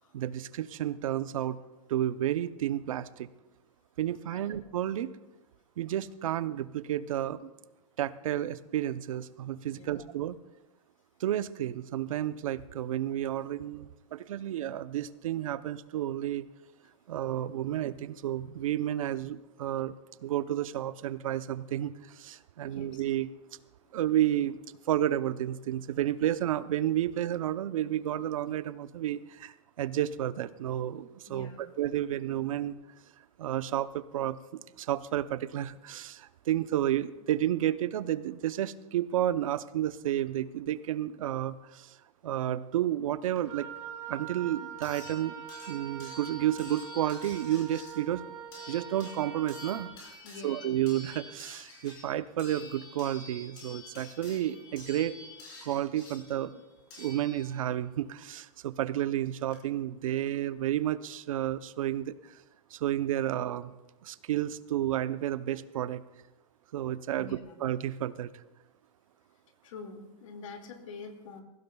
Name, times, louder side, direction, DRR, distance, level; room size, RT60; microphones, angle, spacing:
voice 1, 0.1-1.6 1.9-3.3 4.0-5.1 5.8-7.5 8.0-10.4 11.2-16.5 17.1-19.9 20.2-23.3 23.9-24.6 24.9-32.8 33.4-42.0 42.2-43.7 44.1-48.2 48.7-49.9 50.4-55.2 55.6-56.6 57.0-62.3 62.7-63.7 64.0-66.0 66.7-68.3, right 12 dB, 90° right, 14 dB, 0.7 m, -31 dB
voice 2, 9.7-10.1 16.8-16.9 19.1-19.2 22.6-23.0 31.3-31.7 50.2-50.6 67.2-67.4 69.6-71.4, left 4 dB, 75° left, 5 dB, 2.2 m, -46 dB
sound 1, 43.4-43.5 44.8-57.8 59.1-59.2 59.5-59.6, left 2 dB, 30° left, 4.4 m, -49 dB
Wind instrument woodwind instrument, 43.5-50.0, right 8 dB, 70° right, 2.3 m, -43 dB
21.0 x 16.0 x 2.3 m, 1.0 s
supercardioid pair, 170°, 17 cm